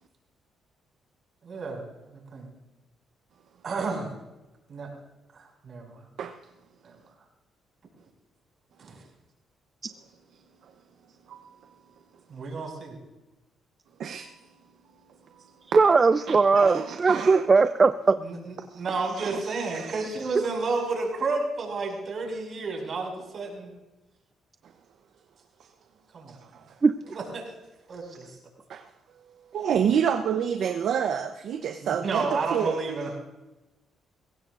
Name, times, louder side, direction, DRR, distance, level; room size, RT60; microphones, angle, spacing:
voice 1, 1.4-1.8 2.1-2.5 3.6-4.1 4.7-4.9 5.3-6.0 6.8-6.9 8.8-9.0 12.3-13.0 16.5-16.6 18.2-23.7 26.1-26.4 27.1-27.4 27.9-28.3 31.8-33.2, right 3 dB, 50° right, 0 dB, 5.6 m, -31 dB
voice 2, 14.0-14.3 16.3-17.5 19.1-20.0 20.3-20.4 26.3-26.6 28.7-28.9 29.5-32.8, right 8 dB, 70° right, 6 dB, 0.8 m, -29 dB
voice 3, 15.7-18.2 26.8-26.9, right 4 dB, 35° right, 12 dB, 0.4 m, -19 dB
22.0 x 16.5 x 2.5 m, 1.0 s
cardioid pair, 90°, 0 cm